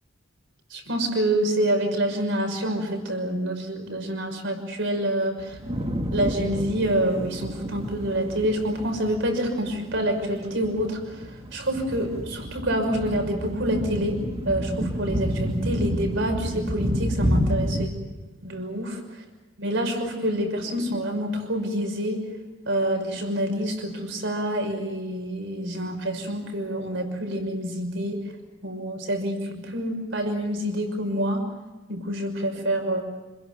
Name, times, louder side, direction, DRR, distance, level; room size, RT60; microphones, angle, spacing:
voice 1, 0.7-5.5 6.1-11.2 11.5-17.9 18.4-19.0 19.6-22.2 22.7-28.2 28.6-31.4 31.9-33.0, right 1 dB, 65° right, 4 dB, 6.0 m, -27 dB
sound 1, 5.4-17.9, equal, 30° right, 2.1 m, -30 dB
28.0 x 21.5 x 7.7 m, 1.2 s
head